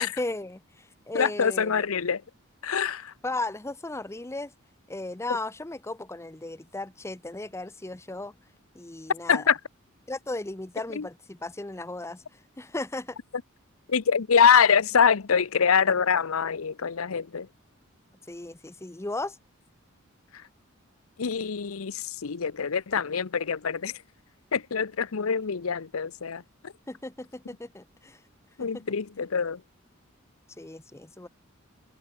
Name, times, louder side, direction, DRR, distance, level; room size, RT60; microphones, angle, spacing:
voice 1, 0.0-1.8 3.2-4.5 4.9-8.3 8.7-9.4 10.1-12.2 12.6-13.2 18.3-19.4 26.9-28.2 28.6-28.8 30.6-31.3, left 2 dB, 15° left, 0.7 m, -36 dB
voice 2, 1.1-2.2 2.6-3.1 9.3-9.6 10.9-11.1 13.9-17.5 21.2-23.9 24.5-26.4 28.6-29.6, left 6 dB, 85° left, 0.7 m, -24 dB
head